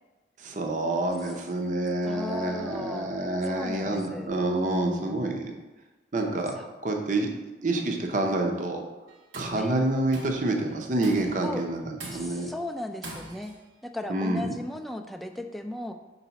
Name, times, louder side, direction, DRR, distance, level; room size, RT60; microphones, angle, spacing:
voice 1, 0.4-5.5 6.1-7.3 7.6-8.8 9.4-12.5 14.1-14.4, right 2 dB, 40° right, 3 dB, 0.6 m, -28 dB
voice 2, 2.0-3.1 3.4-4.3 4.6-5.4 6.6-6.7 9.5-9.8 11.4-11.6 12.1-13.5 13.8-15.9, left 1 dB, ahead, 5 dB, 0.3 m, -36 dB
Tools, 9.1-9.6 10.1-10.5 11.0-11.5 12.0-12.5 13.0-13.6, right 2 dB, 80° right, 1.1 m, -42 dB
4.9 x 4.0 x 5.6 m, 1.1 s
head